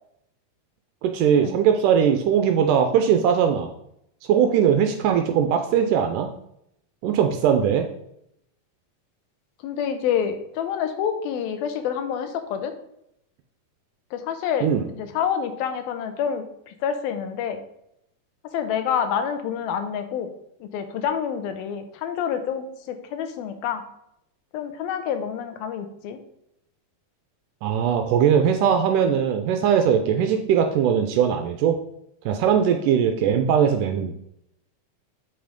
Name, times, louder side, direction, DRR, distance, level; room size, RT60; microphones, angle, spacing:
voice 1, 1.0-3.7 4.3-6.3 7.0-7.9 14.6-14.9 27.6-31.8 32.3-34.1, right 8 dB, 75° right, 6 dB, 2.0 m, -20 dB
voice 2, 9.6-12.7 14.1-17.6 18.4-20.3 20.6-23.8 24.5-26.2, left 8 dB, 90° left, 8 dB, 2.8 m, -28 dB
7.6 x 5.6 x 5.1 m, 0.77 s
omnidirectional pair, 4.1 m